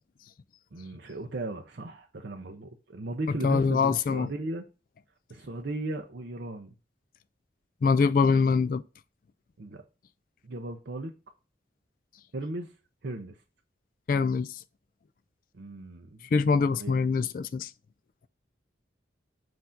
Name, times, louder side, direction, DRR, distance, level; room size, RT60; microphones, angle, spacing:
voice 1, 0.7-4.6 5.3-6.7 9.6-9.8 10.4-11.1 12.3-12.7 13.0-13.3 15.5-16.3 16.7-16.9, right 2 dB, 65° right, 0.6 m, -36 dB
voice 2, 3.4-4.3 7.8-8.8 14.1-14.6 16.3-17.7, left 5 dB, 50° left, 0.3 m, -24 dB
7.7 x 2.6 x 5.6 m
head